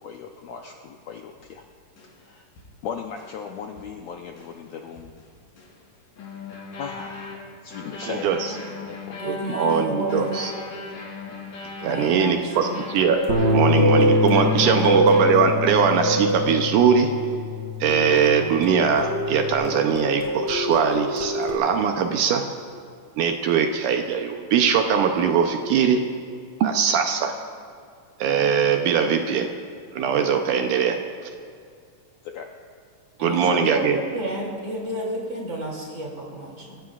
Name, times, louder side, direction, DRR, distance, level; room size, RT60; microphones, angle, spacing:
voice 1, 0.0-1.6 2.2-2.4 2.8-5.1 6.8-9.2 32.2-32.5 33.3-33.7, left 7 dB, 75° left, 2 dB, 1.6 m, -37 dB
sound 1, 1.4-1.5 2.0-2.2 2.6-2.7 3.2-3.4 3.8-3.9 4.3-4.6 5.0-5.8 6.2-16.0, left 3 dB, 90° left, 5.1 m, -39 dB
voice 2, 8.0-8.4 9.3-10.5 11.8-13.2 13.5-17.1 17.8-22.4 23.2-26.0 26.6-27.3 28.2-29.5 29.9-31.0 33.2-34.0, right 7 dB, 75° right, 5 dB, 2.1 m, -21 dB
voice 3, 9.1-10.5 11.8-12.8 14.6-15.1 33.2-36.8, right 1 dB, 35° right, -2 dB, 3.1 m, -31 dB
sound 2, 13.1-17.4 17.9-21.5, right 1 dB, 60° left, 3.0 m, -25 dB
Bass guitar, 13.3-19.5, left 3 dB, 55° right, 1.2 m, -26 dB
26.0 x 16.0 x 2.4 m, 2.3 s
omnidirectional pair, 3.9 m